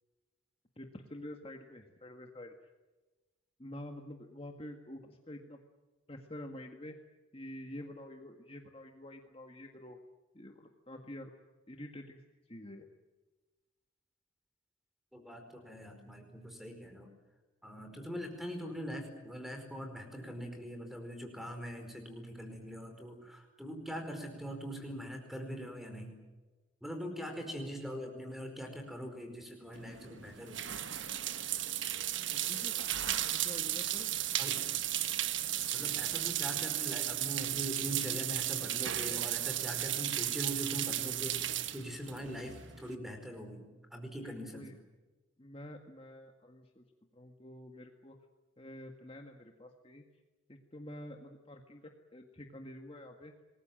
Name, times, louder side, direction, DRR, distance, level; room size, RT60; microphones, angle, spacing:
voice 1, 0.8-2.5 3.6-5.6 6.1-7.0 7.3-10.0 10.3-11.3 11.7-12.2 12.5-12.9 27.2-27.4 32.3-32.8 33.1-34.1 44.2-44.7 45.4-46.8 47.1-48.2 48.6-50.0 50.5-53.3, left 1 dB, 25° left, 4 dB, 1.8 m, -48 dB
voice 2, 15.1-17.1 17.6-26.1 26.8-30.7 34.4-34.6 35.7-43.6 43.9-44.7, equal, ahead, 5 dB, 4.8 m, -42 dB
sound 1, 29.7-42.9, right 12 dB, 60° right, 1.4 m, -35 dB
27.5 x 21.0 x 7.7 m, 1.2 s
head